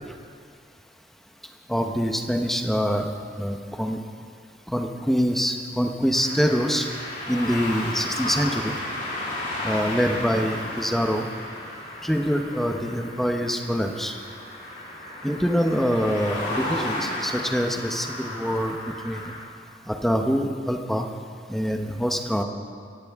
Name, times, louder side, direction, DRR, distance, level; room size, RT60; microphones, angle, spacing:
voice 1, 1.7-3.1 3.4-4.0 4.7-6.9 7.3-8.7 9.6-11.2 12.0-14.1 15.2-18.8 19.0-19.3 19.9-21.1 21.5-22.4, equal, ahead, 4 dB, 0.9 m, -25 dB
sound 1, 6.1-19.4, left 1 dB, 45° left, 3.9 m, -33 dB
22.5 x 17.0 x 3.6 m, 2.2 s
head